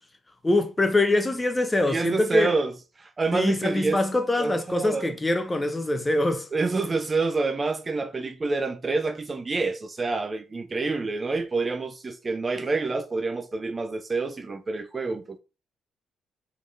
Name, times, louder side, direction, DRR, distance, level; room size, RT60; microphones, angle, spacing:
voice 1, 0.4-2.5 3.3-6.5, left 1 dB, 15° left, 0.6 m, -24 dB
voice 2, 1.9-2.7 3.0-4.0 4.4-5.1 6.5-15.4, right 3 dB, 30° right, 0.4 m, -27 dB
3.8 x 3.3 x 2.6 m
cardioid pair, 90°, 0 cm